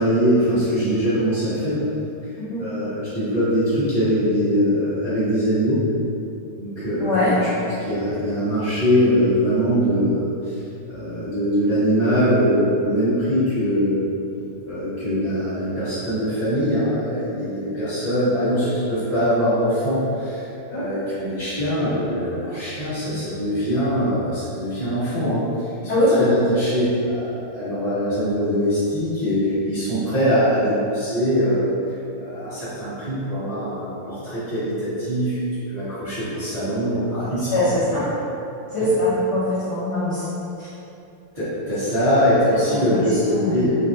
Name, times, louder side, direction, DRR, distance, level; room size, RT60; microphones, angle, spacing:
voice 1, 0.0-1.8 2.2-2.3 2.6-5.8 6.6-7.4 7.8-14.1 14.6-25.7 26.2-31.7 32.2-35.3 35.7-37.7 41.3-43.7, equal, 30° right, -15 dB, 0.7 m, -22 dB
voice 2, 7.0-7.3 20.7-20.8 25.9-26.2 37.5-38.0 38.7-40.3 40.6-40.7 42.5-43.6, left 1 dB, 70° left, -11 dB, 1.0 m, -22 dB
3.4 x 2.4 x 2.6 m, 2.8 s
omnidirectional pair, 2.4 m